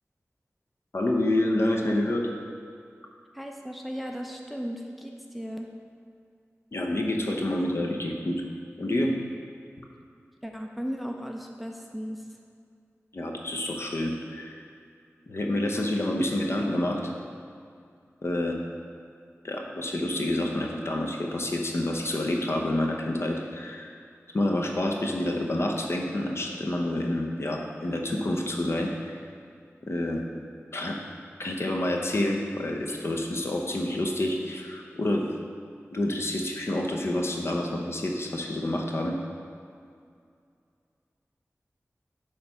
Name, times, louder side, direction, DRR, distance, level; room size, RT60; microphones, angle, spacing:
voice 1, 0.9-2.2 6.7-8.4 8.8-9.1 13.1-14.6 15.3-17.1 18.2-18.5 19.4-23.9 24.3-29.2 29.8-30.2 30.7-31.0 31.4-35.2 35.9-39.2, left 1 dB, 55° left, 1 dB, 0.8 m, -28 dB
voice 2, 3.3-5.7 10.4-12.3, equal, ahead, 2 dB, 0.5 m, -36 dB
8.9 x 3.3 x 5.6 m, 2.3 s
wide cardioid pair, 80°, 5 cm